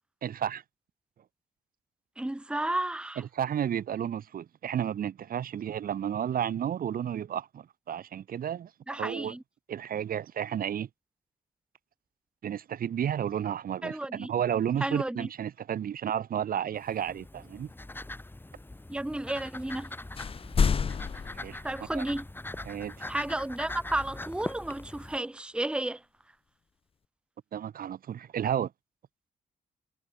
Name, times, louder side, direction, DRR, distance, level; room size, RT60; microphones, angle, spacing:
voice 1, 0.2-0.6 3.2-9.3 9.7-10.9 12.4-17.7 21.4-21.6 21.9-22.0 22.6-22.9 27.5-28.7, right 9 dB, 65° right, 1.2 m, -32 dB
voice 2, 2.2-3.2 8.9-9.4 13.8-14.3 14.8-15.3 18.9-19.9 21.6-22.3 23.1-26.0, right 1 dB, 5° right, 0.9 m, -32 dB
sound 1, 16.7-25.2, left 2 dB, 15° left, 1.8 m, -42 dB
sound 2, 19.7-19.9 20.1-22.2, left 6 dB, 35° left, 0.7 m, -29 dB
cardioid pair, 90°, 16 cm